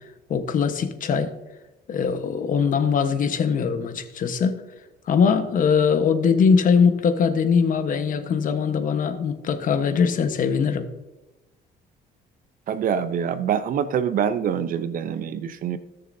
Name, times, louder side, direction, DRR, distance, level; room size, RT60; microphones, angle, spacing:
voice 1, 0.3-1.3 1.9-4.6 5.1-10.9, left 6 dB, 55° left, 8 dB, 1.2 m, -21 dB
voice 2, 12.7-15.8, right 8 dB, 55° right, 12 dB, 0.7 m, -25 dB
17.5 x 6.7 x 2.7 m, 1.0 s
cardioid pair, 110°, 17 cm